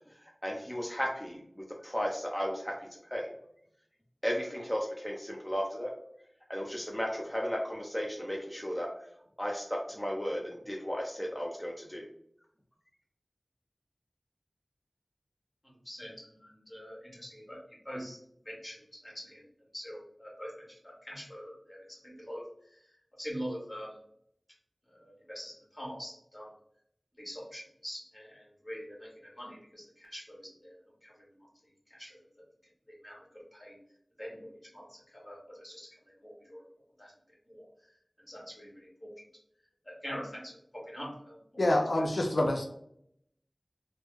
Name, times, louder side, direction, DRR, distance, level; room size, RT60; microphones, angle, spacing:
voice 1, 0.1-3.3 4.2-5.9 6.5-8.9 9.4-12.0, equal, 10° left, -1 dB, 0.6 m, -35 dB
voice 2, 15.6-19.4 19.7-24.0 24.9-26.5 27.2-31.5 31.9-32.2 32.9-33.8 34.2-36.6 37.0-37.1 37.5-37.9 38.2-39.1 39.8-41.6 41.9-42.0, equal, 35° left, -3 dB, 1.5 m, -45 dB
voice 3, 41.6-42.6, left 1 dB, 85° left, 1 dB, 0.4 m, -26 dB
3.2 x 2.1 x 3.4 m, 0.70 s
wide cardioid pair, 50°, 0 cm